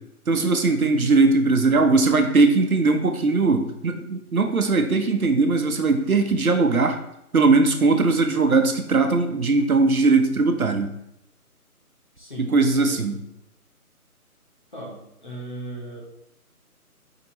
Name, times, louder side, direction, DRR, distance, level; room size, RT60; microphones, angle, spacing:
voice 1, 0.3-7.0 7.3-10.9 12.4-13.2, right 3 dB, 70° right, 6 dB, 0.9 m, -20 dB
voice 2, 12.2-13.1 14.7-16.0, right 1 dB, 30° left, -4 dB, 1.4 m, -37 dB
6.2 x 5.1 x 3.0 m, 0.81 s
figure-of-eight pair, 180°, 45 cm